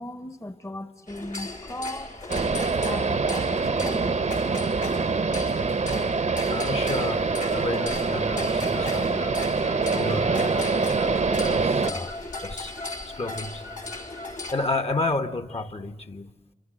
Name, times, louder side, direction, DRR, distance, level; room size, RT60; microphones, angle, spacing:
voice 1, 0.0-2.2 2.8-4.2, left 1 dB, 25° left, 1.1 m, -37 dB
sound 1, 1.1-14.5, left 2 dB, 80° left, 3.2 m, -37 dB
sound 2, 2.3-11.9, right 4 dB, 70° right, 1.1 m, -25 dB
voice 2, 6.5-7.3 7.5-9.3 9.9-10.9 11.4-12.7 13.0-13.6 14.5-16.3, left 2 dB, 50° left, 1.5 m, -31 dB
28.5 x 25.0 x 7.8 m
cardioid pair, 45°, 13 cm